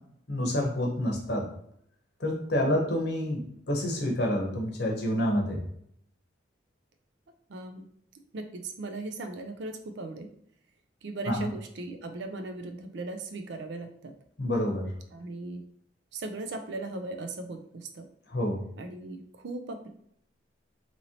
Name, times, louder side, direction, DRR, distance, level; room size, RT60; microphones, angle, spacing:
voice 1, 0.3-1.5 2.2-5.6 11.3-11.5 14.4-14.9 18.3-18.6, left 1 dB, 60° left, 0 dB, 0.8 m, -28 dB
voice 2, 7.5-7.8 8.3-10.3 11.0-14.1 15.1-15.6 16.1-18.1 18.8-19.9, right 2 dB, 65° right, 6 dB, 0.4 m, -38 dB
2.9 x 2.8 x 2.8 m, 0.68 s
head